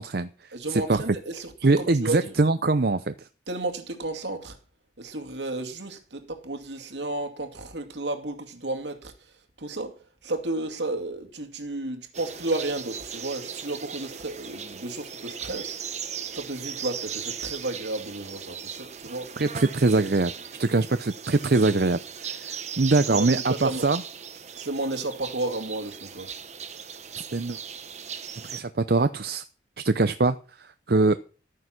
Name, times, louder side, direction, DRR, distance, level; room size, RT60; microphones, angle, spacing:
voice 1, 0.0-1.0 1.6-3.1 19.4-20.3 20.6-24.0 27.2-27.6 28.4-29.4 29.8-31.2, right 3 dB, 60° right, 0.7 m, -23 dB
voice 2, 0.5-2.3 3.5-4.6 5.0-15.8 16.3-19.3 23.1-23.9 24.5-26.4, right 2 dB, 80° right, 2.4 m, -33 dB
sound 1, 12.1-28.6, right 7 dB, 40° right, 1.1 m, -38 dB
13.5 x 9.6 x 6.1 m
head